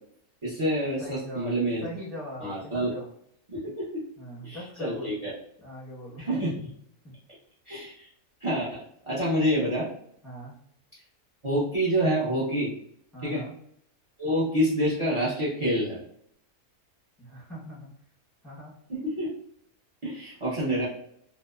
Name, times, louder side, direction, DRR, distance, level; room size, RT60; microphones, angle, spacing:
voice 1, 0.4-1.8 2.4-2.9 3.5-4.0 4.4-5.3 6.2-6.7 7.7-8.1 8.4-9.9 11.4-12.7 13.2-13.4 14.2-16.0 18.9-19.3 20.0-20.9, equal, 50° right, -7 dB, 0.3 m, -27 dB
voice 2, 1.0-3.1 4.2-5.1 5.6-6.3 7.0-7.1 10.2-10.6 13.1-13.6 17.2-17.9 18.4-18.7, equal, ahead, -7 dB, 0.6 m, -41 dB
2.8 x 2.0 x 2.2 m, 0.69 s
omnidirectional pair, 1.6 m